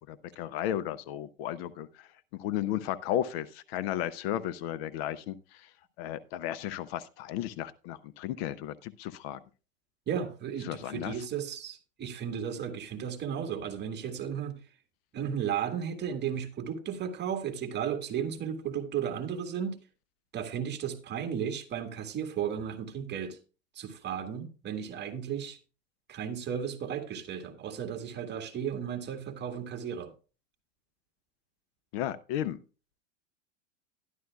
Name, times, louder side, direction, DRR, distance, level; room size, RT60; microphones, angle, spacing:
voice 1, 0.1-2.1 2.4-5.7 6.0-9.4 10.6-11.2 31.9-32.6, left 11 dB, 50° left, 0.7 m, -34 dB
voice 2, 10.1-14.6 15.1-19.8 20.3-23.4 23.8-25.6 26.1-30.1, right 8 dB, 25° right, 1.8 m, -34 dB
12.5 x 11.0 x 2.3 m
hypercardioid pair, 115°, 39 cm